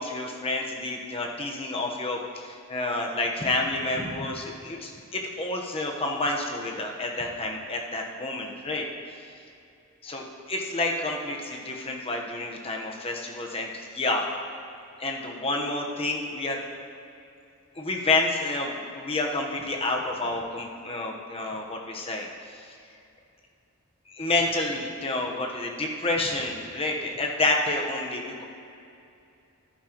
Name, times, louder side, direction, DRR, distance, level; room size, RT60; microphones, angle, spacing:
voice 1, 0.0-8.8 10.0-14.3 15.0-16.6 17.8-22.8 24.1-28.4, left 2 dB, 30° left, 1 dB, 1.1 m, -29 dB
14.0 x 11.0 x 3.1 m, 2.6 s
head